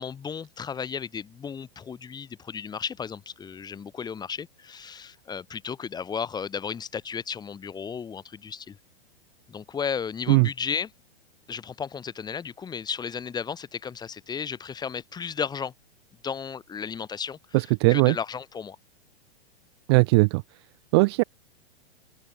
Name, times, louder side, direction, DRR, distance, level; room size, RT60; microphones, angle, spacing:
voice 1, 0.0-8.8 9.5-10.9 11.5-15.7 16.2-18.8, left 6 dB, 10° left, 1.0 m, -34 dB
voice 2, 17.5-18.2 19.9-20.4 20.9-21.2, right 27 dB, 25° right, 0.4 m, -19 dB
open air
figure-of-eight pair, 110°, 33 cm